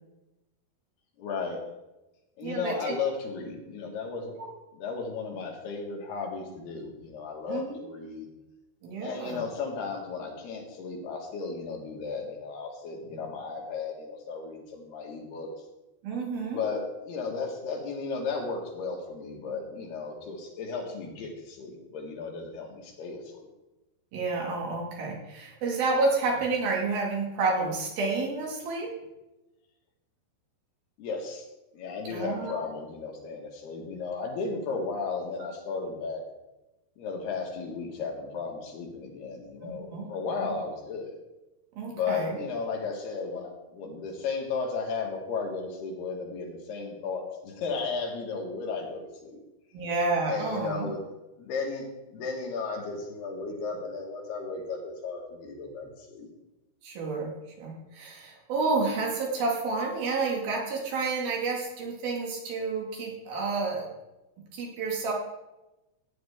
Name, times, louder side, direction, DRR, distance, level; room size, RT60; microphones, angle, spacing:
voice 1, 1.2-1.6 2.4-4.3 4.7-8.3 9.0-15.5 16.5-23.5 31.0-31.5 31.7-36.2 37.0-41.2 41.9-49.4 50.3-51.0 51.4-56.3, left 4 dB, 70° left, 1 dB, 3.8 m, -34 dB
voice 2, 2.4-2.9 4.4-4.5 7.5-7.8 8.8-9.4 13.1-13.2 16.0-16.6 24.1-28.9 32.1-32.6 39.6-40.1 40.4-40.5 41.8-42.4 49.7-50.9 56.8-57.3 57.6-63.9 64.5-65.1, right 3 dB, 65° right, -1 dB, 3.9 m, -30 dB
17.0 x 9.6 x 3.7 m, 1.0 s
omnidirectional pair, 4.8 m